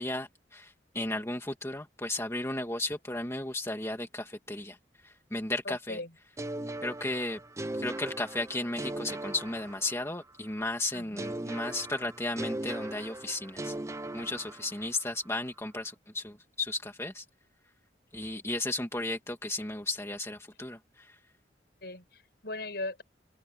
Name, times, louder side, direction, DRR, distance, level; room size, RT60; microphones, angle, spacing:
voice 1, 0.0-4.8 5.0-6.0 6.8-7.4 7.7-13.7 14.1-17.2 18.1-21.1, left 2 dB, 15° left, 2.1 m, -34 dB
voice 2, 5.6-6.1 10.9-11.3 21.8-23.0, left 2 dB, 60° left, 6.1 m, -39 dB
sound 1, 6.4-10.3 11.2-15.0, right 1 dB, 15° right, 0.6 m, -39 dB
open air
head